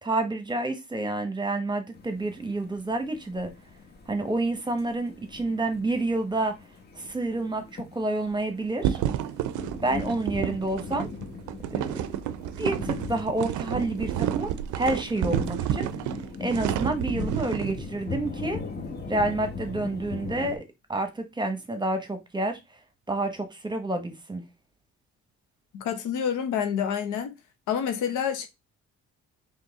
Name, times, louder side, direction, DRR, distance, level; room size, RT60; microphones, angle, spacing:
voice 1, 0.0-3.5 4.1-6.6 7.0-9.0 9.8-11.1 11.7-12.1 12.6-15.9 16.4-18.6 19.1-20.6 20.9-22.6 23.1-24.4, right 2 dB, 15° right, 1.1 m, -29 dB
sound 1, 1.9-20.6, left 3 dB, 35° left, 1.2 m, -40 dB
sound 2, 8.8-17.7, right 11 dB, 80° right, 0.5 m, -30 dB
voice 2, 25.7-27.3 27.7-28.5, left 8 dB, 85° left, 0.9 m, -28 dB
4.0 x 3.3 x 3.5 m
cardioid pair, 90°, 30 cm